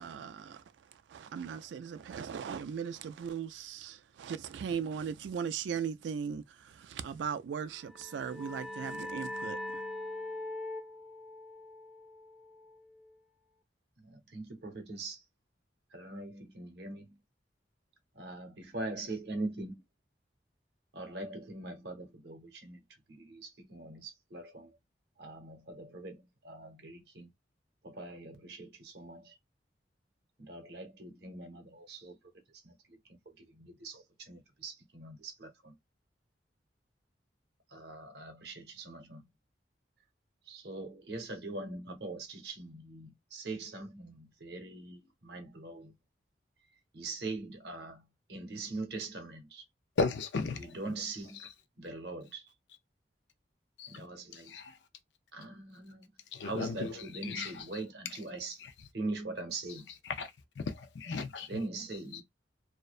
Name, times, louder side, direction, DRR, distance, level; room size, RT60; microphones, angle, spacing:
voice 1, 0.0-9.8, right 7 dB, 85° right, 0.3 m, -38 dB
sound 1, 7.8-13.1, left 1 dB, 5° right, 0.6 m, -42 dB
voice 2, 14.0-15.2 15.9-17.2 18.1-19.8 20.9-22.8 23.1-24.7 25.2-27.3 27.8-29.3 30.4-32.2 32.6-33.0 33.3-35.8 37.7-39.3 40.5-46.0 46.9-49.6 50.6-51.4 51.8-52.4 53.9-54.6 55.3-56.1 56.4-58.6 58.9-59.9 61.5-62.2, right 2 dB, 65° right, 0.8 m, -42 dB
voice 3, 50.0-50.7 51.4-51.5 53.8-54.1 54.3-54.8 56.3-56.9 57.2-57.6 58.6-58.7 60.0-60.3 60.6-61.5 62.1-62.2, left 4 dB, 80° left, 0.5 m, -35 dB
2.4 x 2.1 x 2.4 m
head